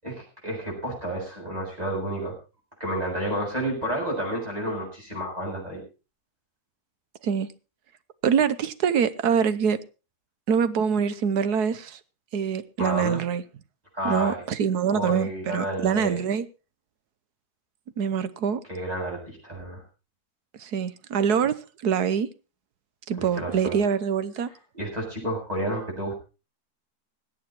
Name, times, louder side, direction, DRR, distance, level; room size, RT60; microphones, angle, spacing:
voice 1, 0.0-2.3 2.8-5.8 12.8-13.2 13.9-14.4 14.9-16.3 18.7-19.8 23.2-23.8 24.7-26.2, right 1 dB, 25° right, 7.7 m, -30 dB
voice 2, 8.2-9.8 10.5-12.0 12.3-13.4 14.0-16.5 18.0-18.6 20.6-21.6 21.8-22.3 23.1-24.5, right 7 dB, 75° right, 1.4 m, -24 dB
21.0 x 8.7 x 4.4 m
omnidirectional pair, 1.7 m